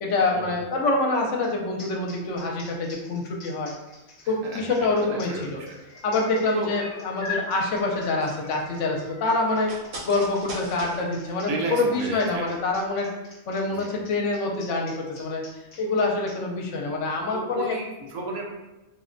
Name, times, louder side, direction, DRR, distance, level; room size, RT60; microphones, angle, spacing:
voice 1, 0.0-3.7 4.3-5.6 6.0-9.7 10.0-13.1 13.5-15.4 15.8-17.7, left 2 dB, 75° left, 0 dB, 0.9 m, -26 dB
sound 1, 1.4-1.5 1.8-16.4, left 2 dB, 30° left, 0.6 m, -49 dB
voice 2, 4.2-6.1 6.5-6.7 11.5-12.5 13.7-13.9 17.3-18.5, right 2 dB, 90° right, 0 dB, 1.0 m, -33 dB
sound 2, 5.6-9.4 11.1-11.2, left 4 dB, 45° left, 1.1 m, -40 dB
sound 3, 8.0-12.6 12.8-12.9, right 1 dB, 60° right, 0.9 m, -41 dB
3.8 x 2.1 x 2.5 m, 1.0 s
omnidirectional pair, 1.3 m